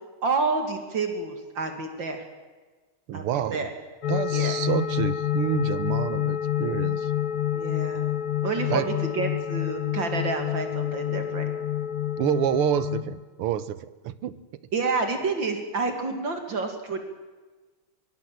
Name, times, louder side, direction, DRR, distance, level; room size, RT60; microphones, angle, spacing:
voice 1, 0.2-2.2 3.1-3.7 4.3-4.5 7.5-8.0 8.4-11.5 14.7-17.0, right 4 dB, 60° right, 6 dB, 3.0 m, -29 dB
voice 2, 3.1-3.7 4.1-7.1 8.7-8.9 12.2-14.3, right 11 dB, 90° right, 16 dB, 1.9 m, -28 dB
sound 1, 4.0-13.0, left 11 dB, 80° left, 2.6 m, -28 dB
23.0 x 22.5 x 7.7 m, 1.3 s
omnidirectional pair, 2.4 m